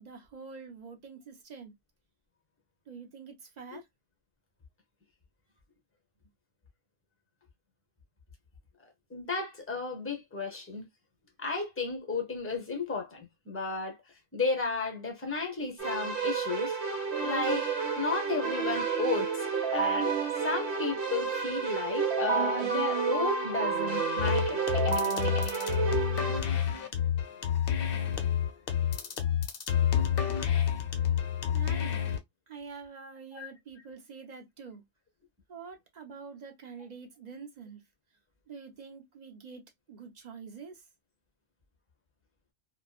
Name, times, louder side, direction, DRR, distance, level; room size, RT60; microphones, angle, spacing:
voice 1, 0.0-1.7 2.9-3.8 31.5-32.0 32.5-34.8 35.5-37.8 38.5-39.6 39.9-40.8, right 5 dB, 45° right, 0.6 m, -46 dB
voice 2, 9.1-10.9 11.4-14.0 14.3-16.8 17.2-17.7 18.0-19.3 19.7-20.1 20.4-24.6 33.3-33.5, left 4 dB, 15° left, 0.6 m, -33 dB
Keyboard (musical), 15.8-26.4, right 5 dB, 60° right, 1.1 m, -30 dB
sound 1, 24.2-32.2, left 9 dB, 55° left, 0.7 m, -28 dB
2.8 x 2.3 x 2.3 m
omnidirectional pair, 1.3 m